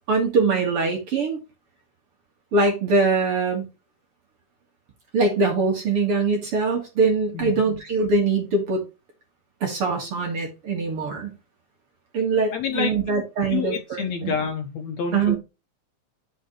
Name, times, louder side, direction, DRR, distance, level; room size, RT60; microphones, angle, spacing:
voice 1, 0.1-1.4 2.5-3.6 5.1-8.8 9.6-11.3 12.1-14.3 15.1-15.4, right 3 dB, 45° right, 2.3 m, -22 dB
voice 2, 12.5-12.9 13.5-15.4, left 6 dB, 65° left, 2.0 m, -28 dB
9.6 x 5.9 x 3.1 m
omnidirectional pair, 4.1 m